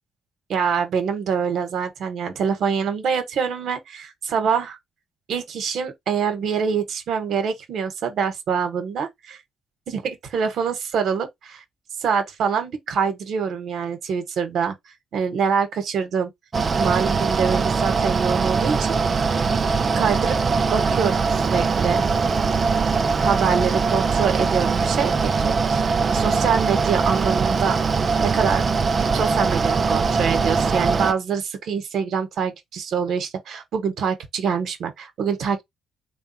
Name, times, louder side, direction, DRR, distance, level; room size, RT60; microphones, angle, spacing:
voice 1, 0.5-4.8 5.3-9.4 9.9-11.6 12.0-14.8 15.1-16.3 16.7-19.0 20.0-20.4 20.7-22.1 23.2-28.6 29.1-35.6, right 6 dB, 70° right, 1.3 m, -25 dB
Mechanical fan, 16.5-31.1, right 4 dB, 40° right, 0.5 m, -21 dB
3.6 x 2.4 x 4.1 m
cardioid pair, 90°, 0 cm